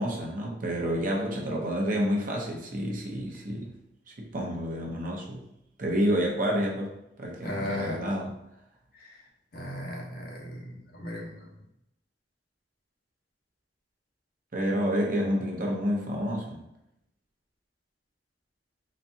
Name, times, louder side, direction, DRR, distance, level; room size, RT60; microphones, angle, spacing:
voice 1, 0.0-3.7 4.1-5.5 5.8-8.4 14.5-16.6, equal, 50° right, -1 dB, 0.9 m, -29 dB
voice 2, 7.4-8.0 9.0-9.1 9.5-11.5, left 1 dB, 55° left, -2 dB, 1.1 m, -36 dB
4.1 x 3.3 x 2.8 m, 0.82 s
head